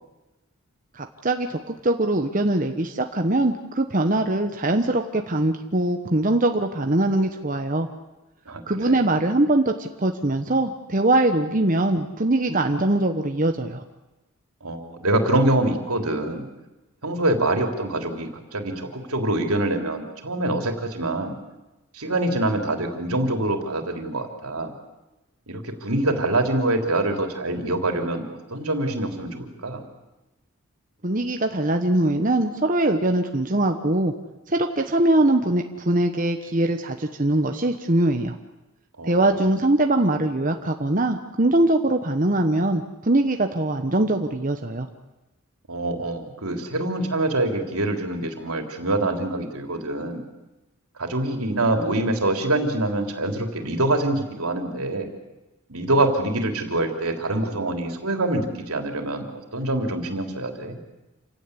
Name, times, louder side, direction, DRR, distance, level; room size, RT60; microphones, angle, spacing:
voice 1, 0.9-7.9 8.7-13.8 31.0-34.1 34.5-38.4 39.0-44.9, right 1 dB, 35° right, 5 dB, 1.1 m, -22 dB
voice 2, 8.5-9.0 14.6-16.5 17.0-21.4 21.9-24.7 25.5-28.2 28.5-29.8 39.0-39.3 45.7-50.2 51.0-55.1 55.7-59.3 59.5-60.8, right 1 dB, 85° right, 5 dB, 3.5 m, -25 dB
28.0 x 17.0 x 9.8 m, 1.1 s
head